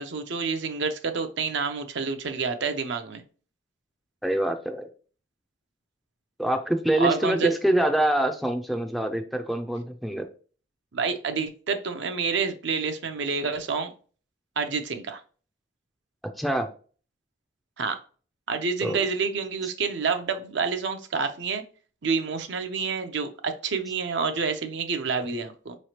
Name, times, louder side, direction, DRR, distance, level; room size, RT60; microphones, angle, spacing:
voice 1, 0.0-3.2 7.0-7.5 10.9-13.9 14.6-15.2 17.8-18.0 18.5-21.6 22.0-25.8, right 5 dB, 65° right, 0.6 m, -28 dB
voice 2, 4.2-4.8 6.4-10.3 16.4-16.7 18.8-19.0, right 1 dB, ahead, 0.4 m, -25 dB
4.8 x 3.1 x 2.9 m
head